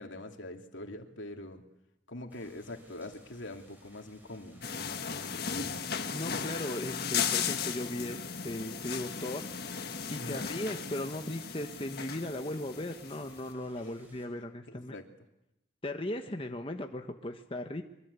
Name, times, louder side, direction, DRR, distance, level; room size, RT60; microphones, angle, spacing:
voice 1, 0.0-1.6 2.1-5.8 10.1-10.5 13.8-13.9 14.7-15.1, left 1 dB, 80° left, 4 dB, 2.8 m, -44 dB
sound 1, 2.3-14.3, equal, 10° right, 5.8 m, -61 dB
sound 2, 4.6-13.4, left 6 dB, 55° left, 1.6 m, -36 dB
voice 2, 6.1-9.4 10.1-14.9 15.8-17.8, left 1 dB, 30° left, 5 dB, 1.3 m, -37 dB
24.0 x 23.0 x 8.3 m, 0.88 s
head